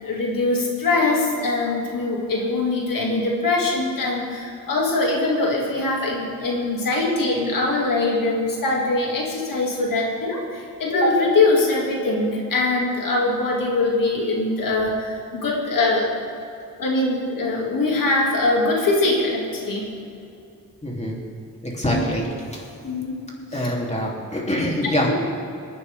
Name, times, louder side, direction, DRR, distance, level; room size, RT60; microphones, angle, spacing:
voice 1, 0.0-16.1 16.8-19.9 21.9-22.1 22.8-23.2 23.5-23.7 25.1-25.2, left 2 dB, 85° left, -1 dB, 2.5 m, -22 dB
voice 2, 20.8-21.2 21.6-22.6 23.5-25.1, left 1 dB, 20° left, -2 dB, 3.1 m, -25 dB
21.0 x 9.7 x 3.6 m, 2.6 s
cardioid pair, 75°, 32 cm